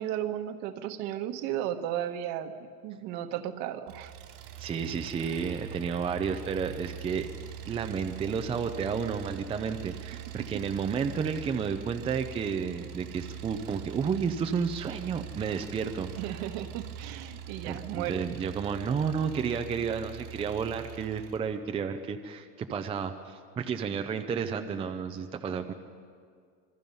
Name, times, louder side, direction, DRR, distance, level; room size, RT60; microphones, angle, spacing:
voice 1, 0.0-4.1 16.2-18.3, right 11 dB, 55° right, 8 dB, 1.4 m, -34 dB
Engine, 3.9-21.4, right 9 dB, 80° right, 3.3 m, -43 dB
voice 2, 4.6-7.3 7.7-16.4 17.6-25.7, right 6 dB, 15° right, 6 dB, 0.5 m, -32 dB
26.5 x 22.0 x 5.5 m, 2.1 s
supercardioid pair, 160°, 43 cm